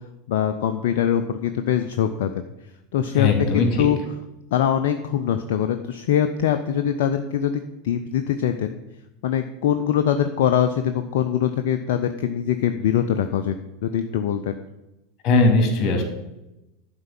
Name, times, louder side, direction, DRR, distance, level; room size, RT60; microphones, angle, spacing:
voice 1, 0.3-2.3 2.9-3.3 3.5-4.0 4.5-8.8 9.2-13.6 13.8-14.6, left 9 dB, 60° left, 8 dB, 0.5 m, -23 dB
voice 2, 3.1-3.9 15.2-16.0, left 3 dB, 40° left, 4 dB, 2.7 m, -19 dB
11.0 x 4.5 x 7.4 m, 0.95 s
figure-of-eight pair, 80°, 0 cm